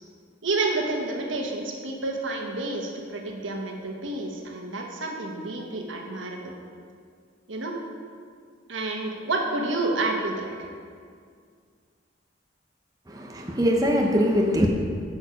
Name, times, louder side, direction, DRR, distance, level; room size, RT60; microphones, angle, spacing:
voice 1, 0.4-6.5 7.5-7.7 8.7-10.5, right 2 dB, 85° right, 1 dB, 1.3 m, -29 dB
voice 2, 13.1-14.7, equal, 20° right, 0 dB, 0.6 m, -22 dB
8.8 x 6.3 x 5.2 m, 2.1 s
head